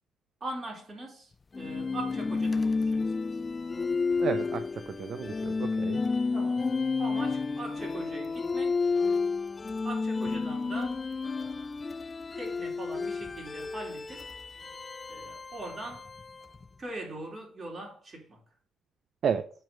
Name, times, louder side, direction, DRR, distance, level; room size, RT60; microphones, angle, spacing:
voice 1, 0.4-3.1 6.3-6.7 7.0-8.9 9.8-11.8 12.3-14.3 15.1-16.1 16.8-18.4, right 2 dB, 35° right, 3.9 m, -41 dB
sound 1, 1.5-16.6, left 4 dB, 30° left, 0.3 m, -31 dB
voice 2, 4.2-6.0 19.2-19.5, right 7 dB, 60° right, 0.5 m, -32 dB
7.8 x 4.6 x 5.3 m
cardioid pair, 90°, 0 cm